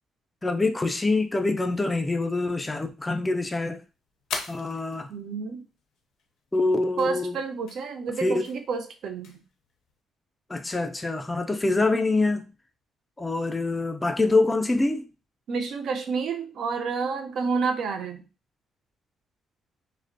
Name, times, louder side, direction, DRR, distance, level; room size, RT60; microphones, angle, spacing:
voice 1, 0.4-3.8 4.5-5.1 6.5-7.4 8.2-8.5 10.5-12.5 13.2-15.0, left 2 dB, 20° left, 0.3 m, -25 dB
sound 1, 0.9-10.0, left 5 dB, 80° left, 0.4 m, -44 dB
voice 2, 5.1-5.6 7.0-9.4 11.7-11.8 15.5-18.3, right 5 dB, 70° right, 0.4 m, -29 dB
2.5 x 2.0 x 2.5 m
cardioid pair, 90°, 0 cm